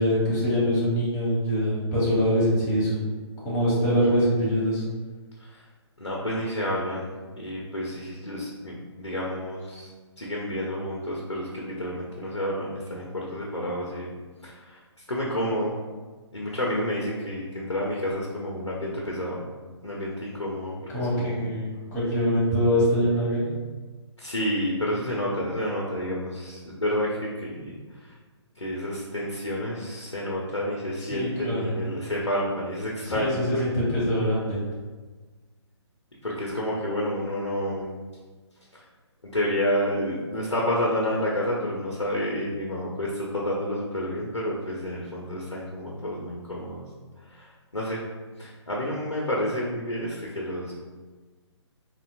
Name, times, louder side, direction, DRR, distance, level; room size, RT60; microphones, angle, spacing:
voice 1, 0.0-3.0 3.4-4.8 20.9-23.5 31.0-31.8 33.0-34.6, equal, 15° left, -7 dB, 1.2 m, -24 dB
voice 2, 6.0-7.1 7.4-9.9 10.2-14.1 14.4-14.8 15.1-15.8 16.3-19.4 19.8-21.4 24.2-27.8 28.6-33.6 36.2-37.9 38.7-38.8 39.2-46.8 47.3-47.5 47.7-48.0 48.4-50.7, equal, 85° left, -3 dB, 0.7 m, -29 dB
3.8 x 2.8 x 2.6 m, 1.4 s
figure-of-eight pair, 135°, 15 cm